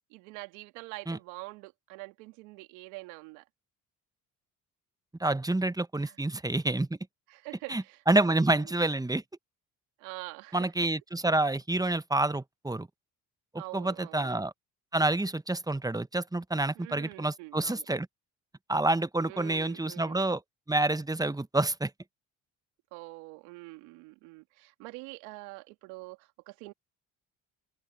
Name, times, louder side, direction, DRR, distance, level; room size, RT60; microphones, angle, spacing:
voice 1, 0.1-3.4 6.0-6.2 7.3-8.8 10.0-10.7 13.6-14.3 16.7-17.9 19.3-20.3 22.9-26.7, right 24 dB, 85° right, 2.6 m, -45 dB
voice 2, 5.2-6.9 7.7-9.2 10.5-12.9 13.7-14.5 14.9-18.1 18.7-20.4 20.7-21.9, right 2 dB, 10° right, 1.0 m, -28 dB
open air
hypercardioid pair, 55°, 42 cm